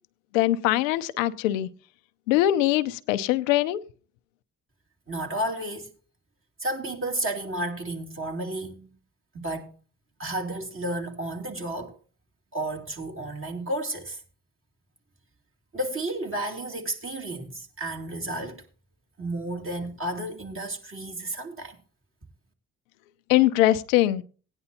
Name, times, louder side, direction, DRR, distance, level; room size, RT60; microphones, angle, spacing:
voice 1, 0.3-1.7 2.3-3.8 23.3-24.2, left 14 dB, 90° left, 0.6 m, -22 dB
voice 2, 5.1-5.9 6.6-8.9 9.3-9.7 10.2-12.0 12.5-14.2 15.7-18.6 19.2-21.8, right 1 dB, 35° right, 2.9 m, -32 dB
17.5 x 9.8 x 2.8 m
hypercardioid pair, 50°, 38 cm